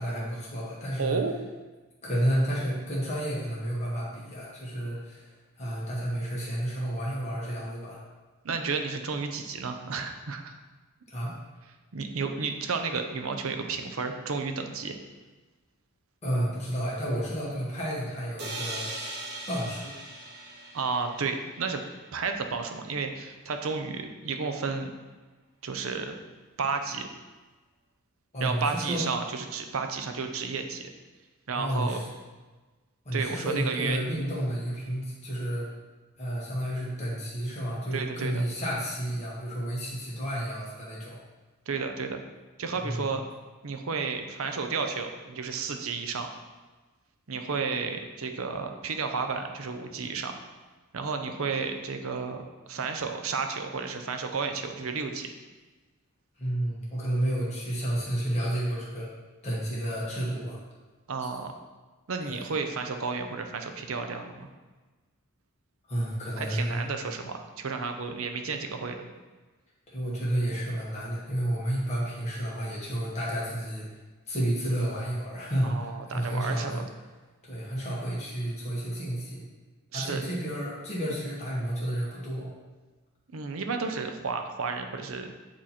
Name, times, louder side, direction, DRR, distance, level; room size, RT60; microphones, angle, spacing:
voice 1, 0.0-1.2 2.0-8.0 11.1-11.3 16.2-18.9 19.5-20.0 28.3-29.0 31.5-32.1 33.0-35.7 36.2-41.2 42.8-43.1 56.4-59.1 59.4-60.6 61.2-61.3 62.3-62.4 65.9-66.8 69.9-73.9 74.3-76.8 77.4-79.4 79.9-82.5, right 1 dB, 30° left, -6 dB, 1.4 m, -31 dB
voice 2, 1.0-1.4 8.4-10.5 11.9-15.0 20.7-21.8 22.1-24.9 25.6-26.1 26.6-27.1 28.4-30.9 31.5-32.0 33.1-34.0 37.9-38.4 41.7-42.2 42.6-43.2 43.6-46.3 47.3-50.4 50.9-55.3 61.1-61.5 62.1-64.5 66.4-69.0 75.6-76.8 79.9-80.2 83.3-85.3, right 4 dB, 70° right, 6 dB, 0.6 m, -32 dB
sound 1, 18.4-22.2, right 2 dB, 50° right, 0.9 m, -40 dB
8.7 x 2.9 x 4.2 m, 1.3 s
head